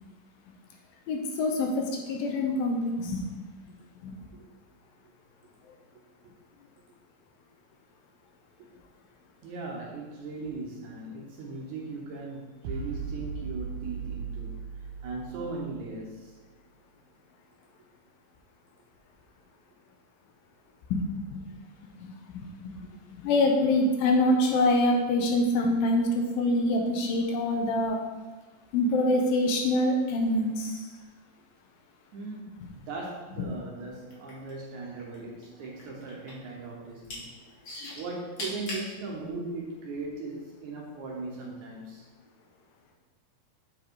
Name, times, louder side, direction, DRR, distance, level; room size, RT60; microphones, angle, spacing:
voice 1, 1.1-3.2 4.0-4.1 20.9-21.4 21.8-22.5 22.8-28.0 28.7-30.9 37.8-37.9, left 1 dB, 80° left, 2 dB, 2.6 m, -25 dB
voice 2, 9.4-14.6 15.0-16.3 22.8-23.0 26.5-26.6 32.1-37.3 37.9-42.0, right 3 dB, 65° right, -2 dB, 2.1 m, -38 dB
sound 1, 12.6-16.1, right 6 dB, 85° right, 2.4 m, -37 dB
sound 2, 34.0-35.2 35.4-36.5 36.9-37.2 37.6-38.9 39.6-39.7, left 1 dB, 40° left, 2.0 m, -38 dB
7.7 x 4.7 x 4.6 m, 1.3 s
omnidirectional pair, 4.1 m